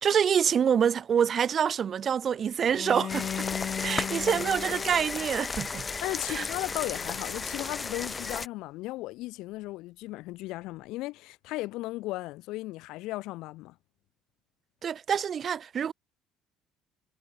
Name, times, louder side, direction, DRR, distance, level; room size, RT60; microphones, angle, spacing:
voice 1, 0.0-3.3 3.8-5.8 6.3-6.4 14.8-15.9, right 8 dB, 35° right, 0.7 m, -26 dB
Bowed string instrument, 2.7-7.7, left 9 dB, 40° left, 2.7 m, -38 dB
sound 1, 3.1-8.5, left 4 dB, 20° left, 0.4 m, -34 dB
voice 2, 6.0-13.7, left 19 dB, 75° left, 0.6 m, -36 dB
cardioid pair, 155°, 0 cm